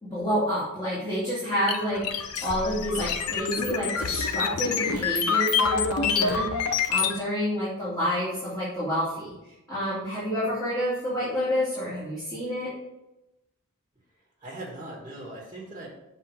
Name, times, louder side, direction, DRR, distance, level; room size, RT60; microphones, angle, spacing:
voice 1, 0.0-12.7, equal, 15° left, -11 dB, 2.6 m, -29 dB
sound 1, 1.7-7.2, left 6 dB, 75° left, 0.7 m, -27 dB
voice 2, 14.1-15.9, right 1 dB, 20° right, -3 dB, 1.5 m, -40 dB
6.9 x 3.9 x 6.2 m, 0.92 s
head